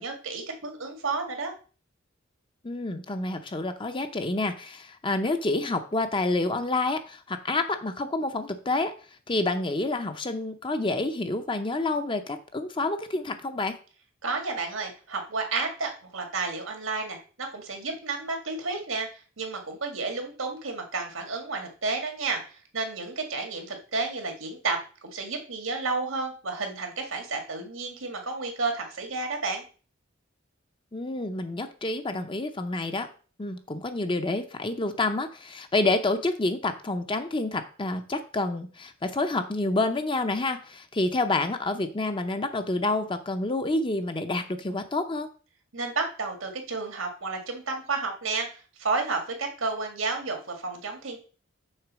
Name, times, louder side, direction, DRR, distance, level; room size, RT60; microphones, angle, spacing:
voice 1, 0.0-1.5 14.2-19.1 19.4-29.6 45.7-51.2, right 3 dB, 85° right, 4 dB, 2.0 m, -31 dB
voice 2, 2.6-8.9 9.3-13.8 30.9-33.1 33.4-45.3, left 2 dB, 25° left, 8 dB, 0.7 m, -28 dB
6.5 x 3.8 x 6.2 m, 0.37 s
head